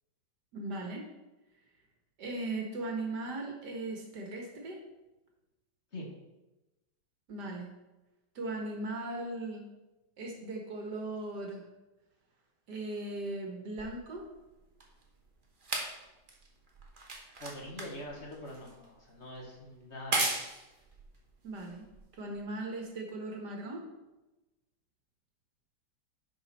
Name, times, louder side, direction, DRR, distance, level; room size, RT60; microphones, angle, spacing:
voice 1, 0.5-1.1 2.2-4.8 7.3-7.7 8.4-9.7 10.2-11.6 12.7-14.2 21.4-21.8 22.1-23.8, right 2 dB, 70° right, 1 dB, 2.0 m, -38 dB
sound 1, 13.8-22.4 23.2-23.3, right 2 dB, 35° right, 1.1 m, -38 dB
voice 2, 17.4-20.4, left 1 dB, 40° left, -2 dB, 1.7 m, -44 dB
10.5 x 5.0 x 4.2 m, 1.0 s
omnidirectional pair, 1.9 m